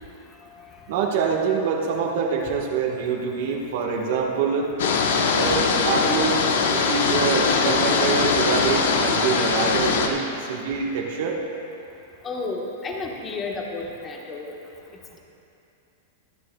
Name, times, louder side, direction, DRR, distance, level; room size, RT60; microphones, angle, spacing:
voice 1, 0.9-4.7 5.3-6.4 6.7-11.4, right 5 dB, 60° right, -1 dB, 1.3 m, -25 dB
sound 1, 4.8-10.1, left 5 dB, 80° left, 1.1 m, -21 dB
voice 2, 12.2-14.5, left 3 dB, 20° left, 0 dB, 1.3 m, -31 dB
24.5 x 9.4 x 2.3 m, 2.8 s
supercardioid pair, 155°, 0 cm